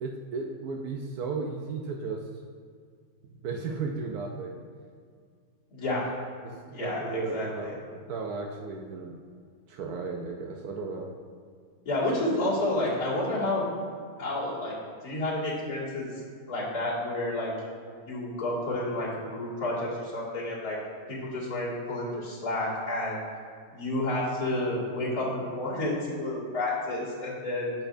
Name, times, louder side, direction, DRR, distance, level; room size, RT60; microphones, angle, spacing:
voice 1, 0.0-2.2 3.4-4.6 6.4-9.2 9.7-11.1, right 4 dB, 80° right, 1 dB, 1.2 m, -35 dB
voice 2, 5.7-6.1 6.7-7.7 11.9-13.7 14.2-14.7 15.0-16.1 16.5-17.5 18.1-20.8 21.1-23.2 23.7-27.7, left 1 dB, 75° left, -8 dB, 2.6 m, -30 dB
9.8 x 6.9 x 2.6 m, 2.1 s
omnidirectional pair, 1.6 m